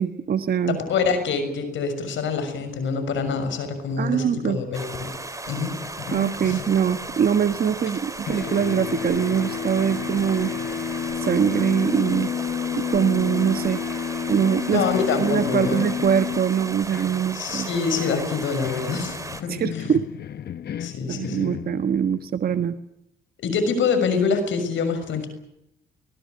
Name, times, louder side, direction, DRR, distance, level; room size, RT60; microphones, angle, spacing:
voice 1, 0.0-0.8 4.0-4.6 6.1-10.5 11.2-12.3 12.8-13.8 14.3-14.8 15.2-17.7 19.5-20.0 21.1-22.8, right 8 dB, 50° right, 9 dB, 1.3 m, -23 dB
voice 2, 0.7-5.1 5.5-5.7 6.4-6.6 14.7-15.9 17.3-19.9 20.8-21.5 23.4-25.3, left 5 dB, 75° left, 9 dB, 6.5 m, -25 dB
sound 1, 4.7-19.4, right 2 dB, 15° right, 3.0 m, -36 dB
sound 2, 5.8-8.0 8.3-22.2, left 8 dB, 55° left, 1.0 m, -32 dB
22.0 x 19.0 x 9.5 m, 0.82 s
cardioid pair, 90°, 20 cm